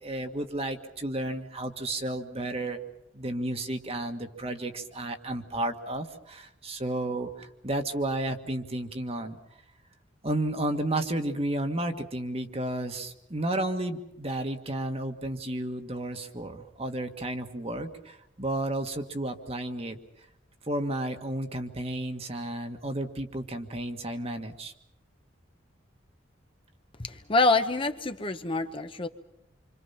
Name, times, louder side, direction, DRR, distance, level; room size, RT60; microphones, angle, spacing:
voice 1, 0.0-2.8 3.1-9.4 10.2-20.0 20.7-24.7, right 1 dB, 35° right, 6 dB, 1.7 m, -32 dB
voice 2, 27.0-29.1, left 3 dB, 30° left, 7 dB, 1.0 m, -26 dB
27.0 x 26.0 x 5.8 m, 0.81 s
head